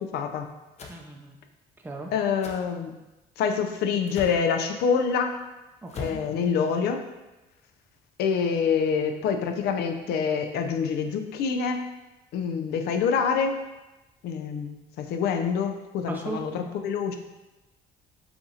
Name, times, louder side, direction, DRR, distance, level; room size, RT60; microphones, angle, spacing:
voice 1, 0.0-0.5 2.1-2.9 3.4-5.4 6.0-7.0 8.2-11.9 12.3-13.6 14.2-17.2, left 6 dB, 75° left, 6 dB, 0.5 m, -26 dB
sound 1, 0.8-1.0 2.4-2.6 4.1-4.4 5.9-6.2, left 4 dB, 40° left, 0.7 m, -38 dB
voice 2, 0.9-1.4 1.8-2.1 5.8-6.2 16.1-16.4, right 2 dB, 10° right, 2 dB, 0.5 m, -36 dB
6.9 x 2.5 x 2.7 m, 1.0 s
cardioid pair, 110°, 17 cm